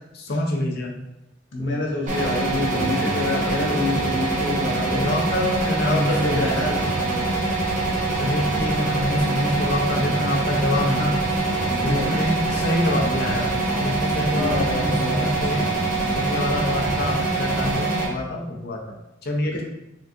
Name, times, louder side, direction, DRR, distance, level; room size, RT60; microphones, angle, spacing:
voice 1, 0.1-1.0 1.5-1.8 4.9-6.8 8.1-11.2 11.7-15.7 16.1-19.0 19.2-19.6, left 1 dB, 60° left, 1 dB, 0.6 m, -26 dB
voice 2, 1.6-5.1 5.8-7.3 11.7-12.1 14.3-15.3 19.5-19.6, left 2 dB, 80° left, -3 dB, 1.1 m, -27 dB
sound 1, 2.1-18.1, right 2 dB, 45° right, 0.8 m, -24 dB
sound 2, 4.5-17.7, right 1 dB, 80° right, 1.4 m, -38 dB
3.7 x 3.4 x 2.6 m, 0.89 s
head